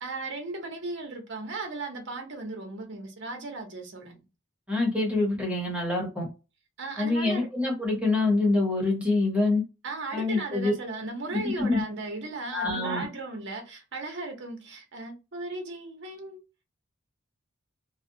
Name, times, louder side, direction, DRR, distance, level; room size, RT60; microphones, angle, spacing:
voice 1, 0.0-4.2 6.8-7.5 9.8-16.4, right 3 dB, 60° right, 0.8 m, -36 dB
voice 2, 4.7-6.3 7.0-9.6 10.1-10.7 11.3-11.8 12.5-13.0, left 2 dB, 5° right, 1.1 m, -25 dB
2.4 x 2.3 x 2.7 m
head